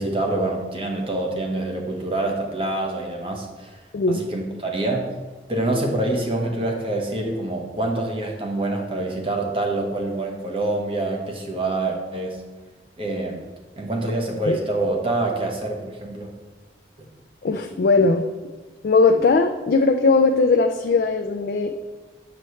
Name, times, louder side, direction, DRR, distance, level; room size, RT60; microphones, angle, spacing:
voice 1, 0.0-3.8 4.1-5.1 5.5-12.4 13.0-13.4 13.8-16.3, right 2 dB, 30° right, 1 dB, 1.1 m, -26 dB
voice 2, 17.4-18.2 18.8-21.7, left 3 dB, 60° left, 4 dB, 0.4 m, -19 dB
7.6 x 6.7 x 3.1 m, 1.3 s
head